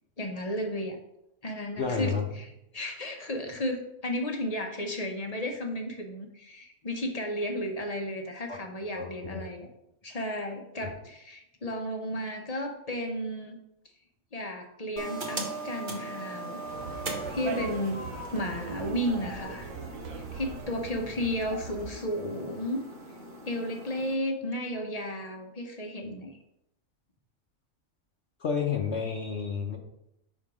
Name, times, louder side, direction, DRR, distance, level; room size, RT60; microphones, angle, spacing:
voice 1, 0.2-1.0 1.4-2.5 2.7-9.7 10.0-13.6 14.3-16.6 17.3-18.1 18.3-19.7 20.3-22.8 23.5-26.4, equal, 35° left, 3 dB, 0.8 m, -33 dB
voice 2, 1.8-2.3 8.5-9.4 10.8-10.9 28.4-29.8, left 6 dB, 60° left, 2 dB, 1.0 m, -31 dB
sound 1, 15.0-24.1, right 2 dB, 40° right, 1.1 m, -40 dB
Conversation, 16.7-21.9, right 5 dB, 75° right, 1.2 m, -40 dB
5.8 x 4.5 x 4.8 m, 0.82 s
omnidirectional pair, 1.4 m